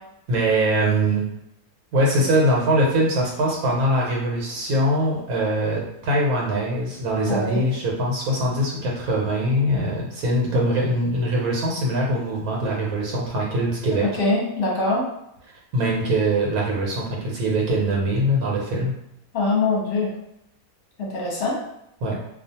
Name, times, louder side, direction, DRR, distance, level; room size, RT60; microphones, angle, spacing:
voice 1, 0.3-1.2 1.9-14.1 15.7-18.9 22.0-22.2, right 1 dB, 85° right, -3 dB, 1.2 m, -22 dB
voice 2, 7.3-7.6 14.2-15.0 19.3-20.1 21.0-21.6, left 3 dB, 45° left, -4 dB, 0.8 m, -23 dB
2.4 x 2.4 x 2.7 m, 0.81 s
omnidirectional pair, 1.5 m